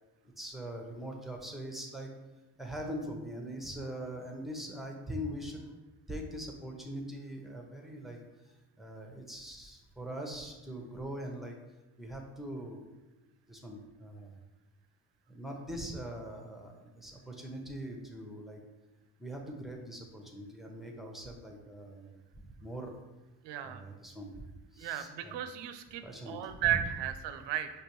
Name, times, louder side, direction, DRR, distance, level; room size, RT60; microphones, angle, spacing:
voice 1, 0.4-2.1 2.6-5.7 6.1-8.2 8.4-11.6 12.0-12.9 13.5-14.4 15.3-18.6 19.2-23.0 23.6-25.3 26.0-26.8, right 1 dB, ahead, 1 dB, 0.8 m, -42 dB
voice 2, 23.4-23.8 24.8-27.7, right 11 dB, 80° right, 9 dB, 0.5 m, -34 dB
5.1 x 3.0 x 3.0 m, 1.1 s
cardioid pair, 65°, 42 cm